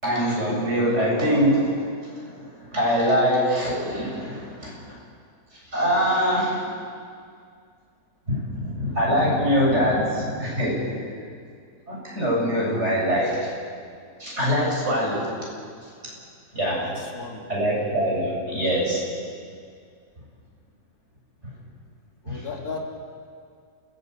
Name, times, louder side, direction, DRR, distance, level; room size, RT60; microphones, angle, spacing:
voice 1, 0.0-5.0 5.7-6.6 8.3-11.0 11.9-13.5 14.2-15.2 16.5-16.8 17.5-19.0 22.3-22.4, equal, 50° right, -4 dB, 8.1 m, -23 dB
voice 2, 16.7-17.5 22.2-22.8, left 4 dB, 85° left, 0 dB, 3.7 m, -35 dB
28.0 x 17.5 x 8.3 m, 2.2 s
omnidirectional pair, 1.6 m